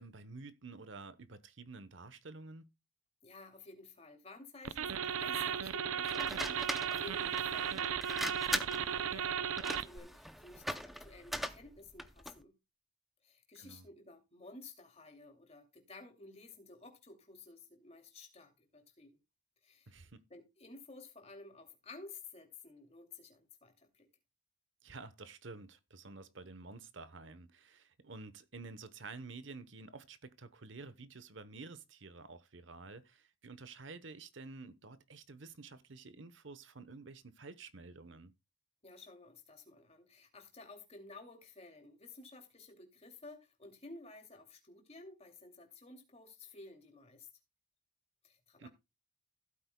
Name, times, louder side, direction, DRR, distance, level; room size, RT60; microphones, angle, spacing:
voice 1, 0.0-2.7 13.5-13.9 19.9-20.2 24.8-38.3 48.6-48.7, right 3 dB, 60° right, 1.0 m, -50 dB
voice 2, 3.2-12.6 13.2-19.2 19.6-19.9 20.3-24.1 38.8-47.3 48.2-48.7, left 3 dB, 30° left, 2.6 m, -54 dB
sound 1, 4.6-10.0, right 8 dB, 90° right, 0.6 m, -35 dB
sound 2, 6.1-12.4, equal, ahead, 0.6 m, -41 dB
16.0 x 8.7 x 2.3 m
head